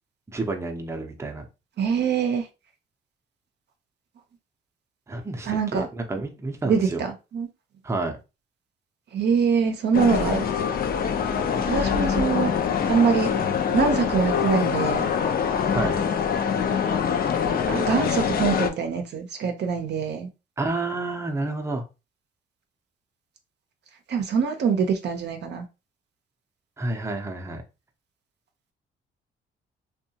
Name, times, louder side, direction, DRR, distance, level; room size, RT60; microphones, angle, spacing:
voice 1, 0.3-1.5 5.1-7.0 7.8-8.2 15.7-16.0 20.6-21.8 26.8-27.6, right 2 dB, 15° right, 0.6 m, -29 dB
voice 2, 1.8-2.5 5.5-5.9 6.6-7.5 9.1-10.4 11.6-12.5 12.9-13.3 13.7-15.1 17.7-20.3 24.1-25.7, right 6 dB, 60° right, 0.6 m, -24 dB
sound 1, 9.9-18.7, left 7 dB, 50° left, 0.5 m, -24 dB
2.7 x 2.2 x 2.8 m
cardioid pair, 90°, 20 cm